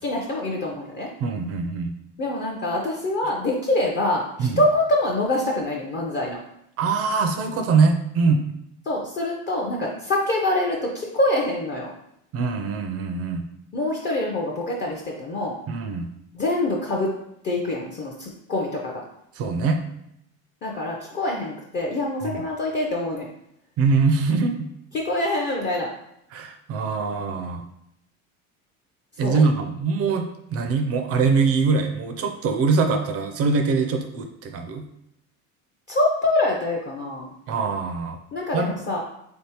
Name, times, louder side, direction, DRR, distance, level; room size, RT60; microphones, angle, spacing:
voice 1, 0.0-1.1 2.2-6.4 8.9-11.9 13.7-15.6 16.3-17.1 17.4-19.0 20.6-23.3 24.9-25.9 29.2-29.5 35.9-37.3 38.3-39.0, left 1 dB, 30° left, -2 dB, 0.5 m, -25 dB
voice 2, 1.2-1.9 4.4-4.6 6.8-8.4 12.3-13.4 15.7-16.1 19.4-19.8 22.2-22.3 23.8-24.7 26.3-27.6 29.2-34.8 37.5-38.2 38.5-38.7, right 4 dB, 40° right, 6 dB, 0.4 m, -23 dB
3.6 x 3.5 x 2.8 m, 0.76 s
supercardioid pair, 125°, 40 cm